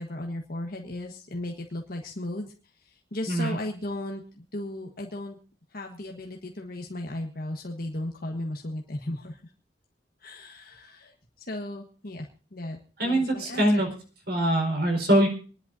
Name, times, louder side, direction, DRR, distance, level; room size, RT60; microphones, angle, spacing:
voice 1, 0.0-2.5 2.8-4.2 4.5-5.4 5.7-9.4 10.2-11.1 11.4-12.8 13.0-13.8, left 1 dB, 55° left, 2 dB, 1.5 m, -35 dB
voice 2, 13.0-13.9 14.3-15.3, right 1 dB, 60° right, 3 dB, 4.8 m, -23 dB
26.5 x 11.0 x 2.7 m, 0.38 s
head